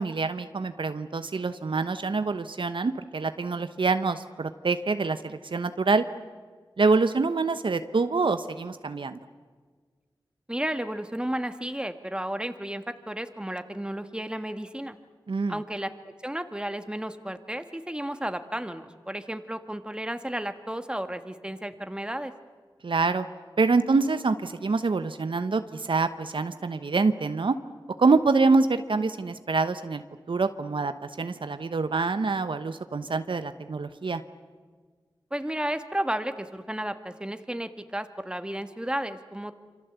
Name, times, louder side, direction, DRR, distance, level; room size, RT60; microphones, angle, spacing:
voice 1, 0.0-6.0 6.8-9.2 15.3-15.6 22.8-23.3 23.6-27.6 28.0-34.2, right 4 dB, 70° right, 10 dB, 1.1 m, -26 dB
voice 2, 10.5-15.0 15.5-22.3 35.3-39.5, right 1 dB, 10° right, 9 dB, 1.8 m, -33 dB
27.0 x 25.0 x 8.2 m, 1.5 s
cardioid pair, 50°, 9 cm